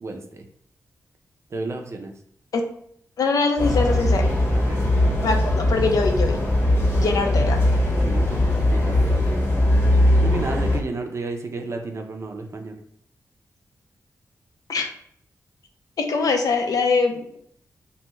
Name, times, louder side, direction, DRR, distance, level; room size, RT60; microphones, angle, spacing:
voice 1, 0.0-0.5 1.5-2.1 4.5-4.8 8.0-9.6 10.2-12.8, right 3 dB, 45° right, 4 dB, 0.4 m, -32 dB
voice 2, 3.2-4.3 5.2-6.4 6.9-7.6 14.7-14.9 16.0-17.4, left 4 dB, 70° left, 4 dB, 0.5 m, -22 dB
sound 1, 3.6-10.8, left 1 dB, 40° left, 0.8 m, -20 dB
2.6 x 2.2 x 3.0 m, 0.66 s
cardioid pair, 70°, 6 cm